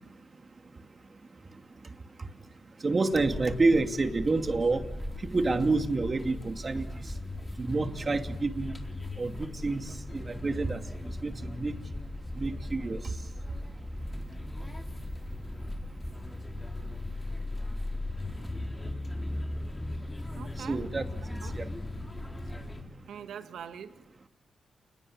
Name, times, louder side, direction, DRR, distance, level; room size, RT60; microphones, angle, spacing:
voice 1, 2.8-4.8 5.2-6.8 7.6-8.7 9.2-10.8 11.2-11.7 12.4-13.0 20.6-21.1 21.5-21.7, right 3 dB, 40° right, 6 dB, 2.6 m, -28 dB
sound 1, 3.1-22.8, left 1 dB, 20° left, 4.0 m, -38 dB
voice 2, 20.3-20.8 21.4-21.6 23.1-24.0, right 8 dB, 80° right, 9 dB, 1.8 m, -43 dB
28.5 x 21.0 x 8.9 m, 0.98 s
supercardioid pair, 50°, 0 cm